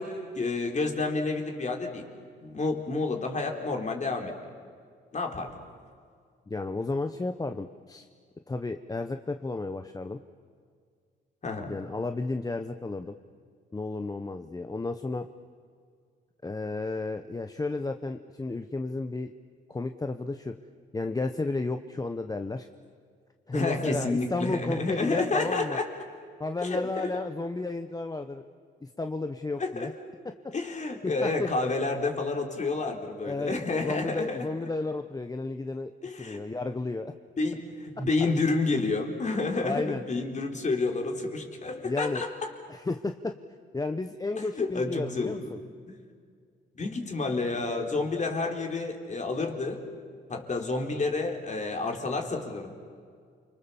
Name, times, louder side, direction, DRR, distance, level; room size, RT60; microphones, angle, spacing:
voice 1, 0.0-2.0 2.4-4.3 5.1-5.6 11.4-11.7 23.5-25.9 26.6-27.1 29.6-29.9 30.5-34.5 36.0-36.4 37.4-42.3 44.4-45.5 46.8-49.8 50.3-52.7, left 3 dB, 35° left, 2 dB, 4.0 m, -29 dB
voice 2, 6.5-8.1 8.5-10.2 11.7-13.1 13.7-15.3 16.4-19.3 19.7-20.6 20.9-22.7 23.5-25.8 26.4-28.4 28.8-29.9 31.0-31.5 33.2-33.5 33.8-35.9 36.2-37.1 39.6-40.0 41.8-42.3 42.7-43.4 43.7-45.6, left 3 dB, 20° left, 7 dB, 1.0 m, -32 dB
29.0 x 25.0 x 7.1 m, 2.1 s
cardioid pair, 90°, 20 cm